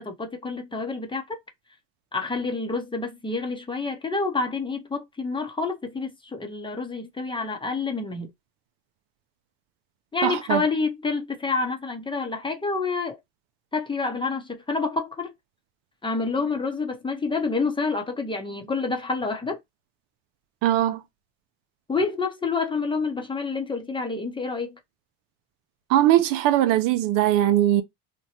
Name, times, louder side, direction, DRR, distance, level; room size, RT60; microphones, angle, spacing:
voice 1, 0.0-1.4 2.1-8.3 10.1-13.2 13.7-15.3 16.0-19.6 21.9-24.8, left 4 dB, 15° left, 0.7 m, -28 dB
voice 2, 10.2-10.6 20.6-21.0 25.9-27.8, right 13 dB, 65° right, 0.6 m, -20 dB
2.9 x 2.2 x 2.8 m
supercardioid pair, 105°, 36 cm